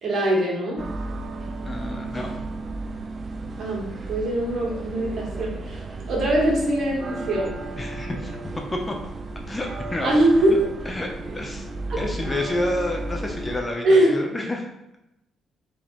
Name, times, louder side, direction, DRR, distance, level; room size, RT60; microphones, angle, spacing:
voice 1, 0.0-0.8 3.6-5.8 6.1-7.5 10.0-10.5 11.9-12.0 13.8-14.1, right 1 dB, 60° right, -3 dB, 1.4 m, -22 dB
sound 1, 0.8-13.6, right 2 dB, 40° right, 0.4 m, -34 dB
voice 2, 1.6-2.3 7.8-8.3 8.7-9.0 9.5-10.1 10.5-10.6 10.9-11.6 12.0-14.7, left 1 dB, 20° left, 2 dB, 0.6 m, -29 dB
3.5 x 2.7 x 3.7 m, 0.88 s
cardioid pair, 90°, 0 cm